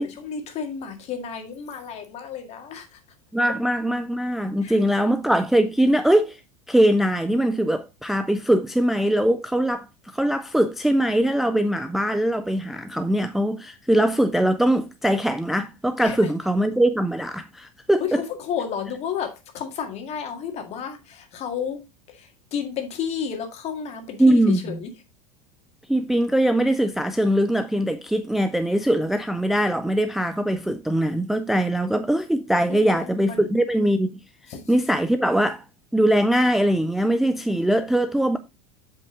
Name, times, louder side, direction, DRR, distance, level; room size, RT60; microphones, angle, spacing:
voice 1, 0.0-3.0 4.6-5.1 16.0-16.2 18.0-21.8 22.1-24.9 32.7-33.5 34.5-34.6, left 7 dB, 35° left, 1.9 m, -32 dB
voice 2, 3.3-6.4 6.7-9.9 10.1-18.2 24.2-24.8 25.9-34.2 34.7-35.6 35.9-38.4, right 1 dB, ahead, 0.4 m, -21 dB
7.8 x 5.6 x 3.7 m
figure-of-eight pair, 80°, 18 cm